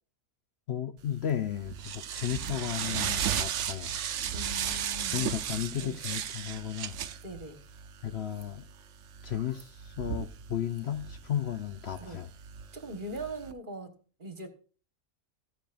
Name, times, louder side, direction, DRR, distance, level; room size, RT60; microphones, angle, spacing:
voice 1, 0.7-4.0 5.1-7.0 8.0-8.7 9.2-12.3, left 10 dB, 55° left, 0.8 m, -34 dB
sound 1, 1.1-13.5, right 9 dB, 65° right, 1.0 m, -36 dB
voice 2, 4.3-5.3 5.7-6.0 7.2-7.6 12.0-12.2 12.7-14.5, right 2 dB, 35° right, 1.6 m, -41 dB
15.0 x 10.5 x 2.5 m
omnidirectional pair, 1.5 m